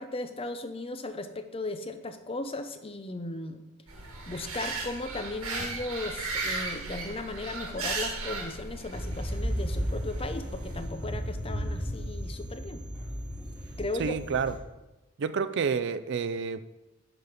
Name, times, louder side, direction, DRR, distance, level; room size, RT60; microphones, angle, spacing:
voice 1, 0.0-3.6 4.3-12.8 13.8-14.2, left 2 dB, 25° left, 0.6 m, -36 dB
sound 1, 3.9-10.9, right 3 dB, 80° right, 2.0 m, -36 dB
sound 2, 8.9-14.6, equal, 5° right, 2.4 m, -34 dB
voice 2, 14.0-14.5 15.2-16.6, right 6 dB, 50° right, 0.3 m, -29 dB
10.5 x 4.1 x 6.5 m
head